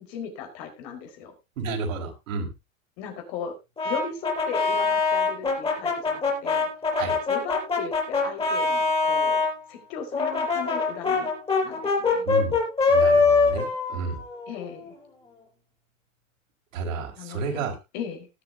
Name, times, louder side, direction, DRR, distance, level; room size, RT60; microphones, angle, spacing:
voice 1, 0.0-1.3 3.0-3.5 3.8-6.7 7.3-11.3 11.6-12.3 14.5-14.9 17.2-18.3, left 6 dB, 50° left, 4 dB, 4.4 m, -37 dB
voice 2, 1.6-2.5 7.0-7.2 12.2-12.6 12.9-14.2 16.7-17.7, right 4 dB, 75° right, 2 dB, 5.0 m, -31 dB
Brass instrument, 3.8-9.5 10.1-14.9, left 4 dB, 15° left, 4.9 m, -23 dB
19.0 x 8.1 x 2.7 m, 0.25 s
hypercardioid pair, 130°, 40 cm